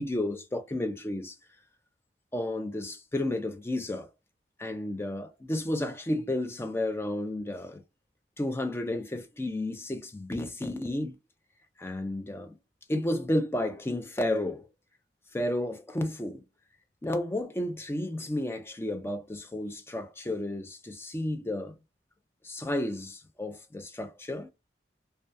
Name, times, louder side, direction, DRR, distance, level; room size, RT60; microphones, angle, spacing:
voice 1, 0.0-1.4 2.3-4.1 4.6-7.8 8.4-11.1 11.8-12.6 12.9-14.7 15.3-16.4 17.0-21.7 22.4-24.5, left 1 dB, 15° left, 0.4 m, -32 dB
2.2 x 2.2 x 2.6 m
head